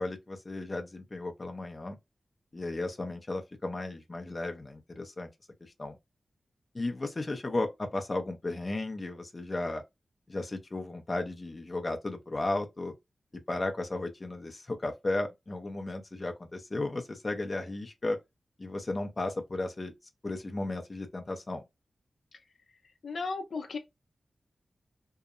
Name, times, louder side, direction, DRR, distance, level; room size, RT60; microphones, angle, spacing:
voice 1, 0.0-2.0 2.5-5.3 5.6-6.0 6.7-9.8 10.3-12.9 13.5-18.2 18.6-19.9 20.2-21.6, left 2 dB, 30° left, 0.5 m, -34 dB
voice 2, 23.0-23.8, left 4 dB, 80° left, 0.5 m, -34 dB
2.7 x 2.0 x 2.4 m
wide cardioid pair, 115°, 0 cm